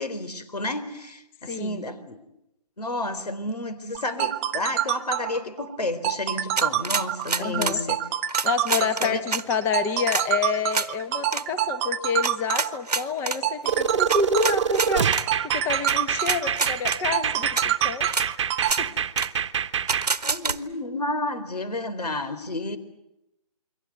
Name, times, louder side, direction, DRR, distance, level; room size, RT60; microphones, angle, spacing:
voice 1, 0.0-2.2 2.8-8.0 8.8-9.2 20.2-22.8, left 2 dB, 85° left, 13 dB, 3.9 m, -31 dB
voice 2, 1.4-1.8 7.4-7.8 8.4-15.1 15.4-18.3 18.6-19.0, left 5 dB, 10° left, 11 dB, 1.0 m, -28 dB
sound 1, 3.9-18.7, right 12 dB, 25° right, 0.9 m, -27 dB
sound 2, 6.6-7.8 8.3-9.4 10.1-10.3 10.7-10.9 11.3-11.4 12.2-13.4 14.1-15.3 15.9-16.0 16.2-17.0 17.6-17.7 18.1-18.3 18.6-18.8 19.2-19.3 19.9-20.6, right 4 dB, 85° right, 1.4 m, -26 dB
sound 3, 13.7-20.1, right 7 dB, 50° right, 1.2 m, -26 dB
28.5 x 23.0 x 8.1 m, 0.88 s
hypercardioid pair, 150°, 20 cm